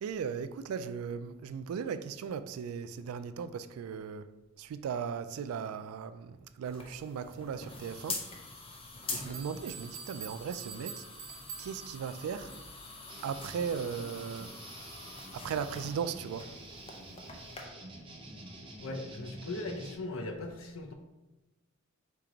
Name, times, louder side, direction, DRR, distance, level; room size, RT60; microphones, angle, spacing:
voice 1, 0.0-4.2 4.6-8.2 9.1-11.0 11.6-12.5 13.2-14.5 15.3-16.5, right 6 dB, 90° right, 0.3 m, -37 dB
sound 1, 6.6-17.6, left 3 dB, 25° left, 0.6 m, -45 dB
sound 2, 9.2-12.9, right 7 dB, 70° right, 1.0 m, -46 dB
sound 3, 13.1-19.9, right 1 dB, 25° right, 0.7 m, -48 dB
voice 2, 18.8-20.9, left 2 dB, 70° left, 0.6 m, -39 dB
4.6 x 2.9 x 3.8 m
head